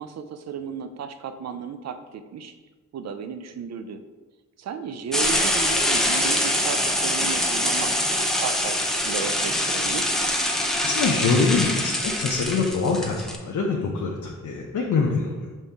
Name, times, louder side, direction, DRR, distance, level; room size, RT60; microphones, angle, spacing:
voice 1, 0.0-2.5 2.9-4.0 4.6-8.8 9.0-10.0, right 6 dB, 55° right, 9 dB, 0.4 m, -34 dB
sound 1, 5.1-13.4, left 1 dB, ahead, 0.5 m, -24 dB
voice 2, 10.8-15.5, left 4 dB, 70° left, -1 dB, 0.6 m, -24 dB
5.3 x 2.7 x 3.4 m, 1.3 s
cardioid pair, 85°, 32 cm